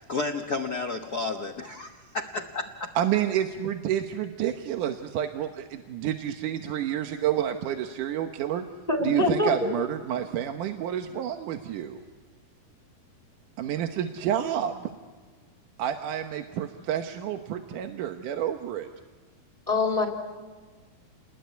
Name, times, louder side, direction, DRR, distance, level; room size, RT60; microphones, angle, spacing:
voice 1, 0.0-2.9, left 3 dB, 70° left, 4 dB, 0.9 m, -32 dB
voice 2, 3.0-8.6 9.0-12.0 13.6-14.9 15.8-18.9, right 10 dB, 75° right, 6 dB, 2.6 m, -29 dB
voice 3, 8.9-9.5 19.7-20.1, left 2 dB, 10° left, 3 dB, 3.2 m, -24 dB
30.0 x 21.0 x 9.5 m, 1.4 s
omnidirectional pair, 3.7 m